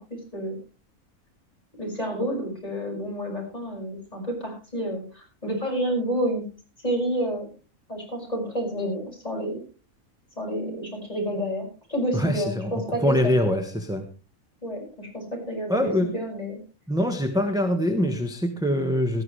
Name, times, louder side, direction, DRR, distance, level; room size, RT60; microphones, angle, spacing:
voice 1, 1.8-6.4 6.8-7.5 7.9-9.6 10.4-13.5 14.6-16.6, equal, 25° left, -1 dB, 6.2 m, -29 dB
voice 2, 12.1-14.0 15.7-16.1 16.9-19.2, left 1 dB, 5° right, 5 dB, 1.2 m, -24 dB
18.5 x 13.0 x 3.2 m, 0.33 s
omnidirectional pair, 1.6 m